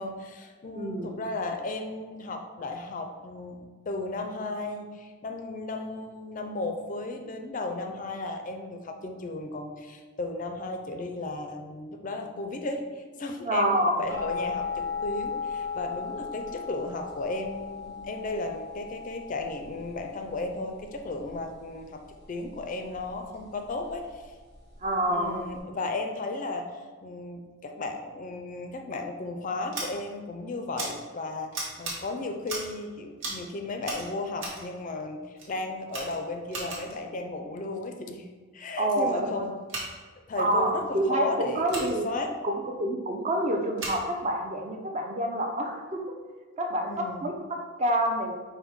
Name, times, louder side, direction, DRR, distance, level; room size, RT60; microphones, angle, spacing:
voice 1, 0.0-22.0 22.3-24.3 25.1-38.3 38.5-39.7 40.3-42.3 46.9-47.2, left 2 dB, 40° left, 4 dB, 0.4 m, -35 dB
voice 2, 0.7-1.1 13.4-14.0 24.8-25.4 38.7-39.4 40.4-42.1 42.4-46.0 46.6-48.4, right 1 dB, 35° right, 3 dB, 0.5 m, -27 dB
sound 1, 14.1-25.6, left 5 dB, 55° right, 1.0 m, -38 dB
Scissors, 29.7-29.9 30.8-30.9 31.5-32.0 32.4-32.8 33.2-33.4 33.8-34.6 35.4-35.5 35.9-37.0 39.6-39.9 41.7-41.9 43.8-44.0, right 2 dB, 70° right, 1.3 m, -36 dB
5.3 x 2.1 x 4.6 m, 1.5 s
head